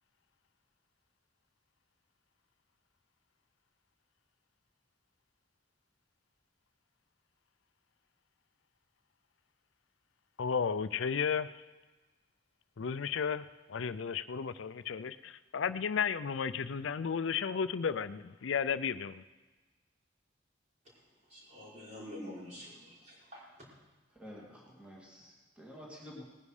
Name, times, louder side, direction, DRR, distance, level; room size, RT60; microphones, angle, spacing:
voice 1, 10.4-11.6 12.8-19.2, left 6 dB, 80° left, 14 dB, 0.5 m, -33 dB
voice 2, 20.8-23.7, left 1 dB, 35° right, -6 dB, 5.5 m, -48 dB
voice 3, 24.1-26.2, equal, 5° right, -4 dB, 2.5 m, -50 dB
19.0 x 10.5 x 4.9 m, 1.2 s
head